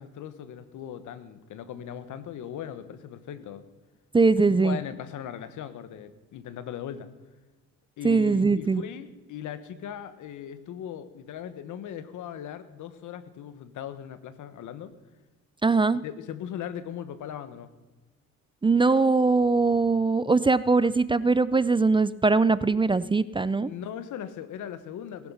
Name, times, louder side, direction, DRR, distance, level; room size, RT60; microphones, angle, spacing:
voice 1, 0.0-3.7 4.5-7.1 8.0-14.9 16.0-17.7 23.6-25.3, left 9 dB, 80° left, 12 dB, 1.4 m, -39 dB
voice 2, 4.1-4.8 8.0-8.8 15.6-16.0 18.6-23.7, right 3 dB, 15° right, 17 dB, 0.4 m, -21 dB
19.0 x 11.0 x 5.7 m, 1.2 s
cardioid pair, 90°, 30 cm